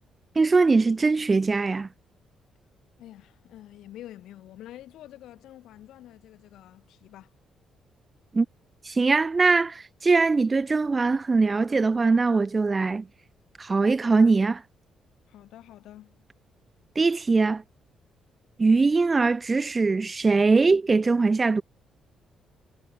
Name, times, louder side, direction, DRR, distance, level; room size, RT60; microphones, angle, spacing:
voice 1, 0.4-1.9 8.3-8.5 8.8-13.1 13.6-14.6 17.0-17.6 18.6-21.6, right 4 dB, 30° right, 0.4 m, -21 dB
voice 2, 3.0-7.3 15.3-16.2, left 13 dB, 85° left, 2.3 m, -47 dB
cardioid pair, 90°, 0 cm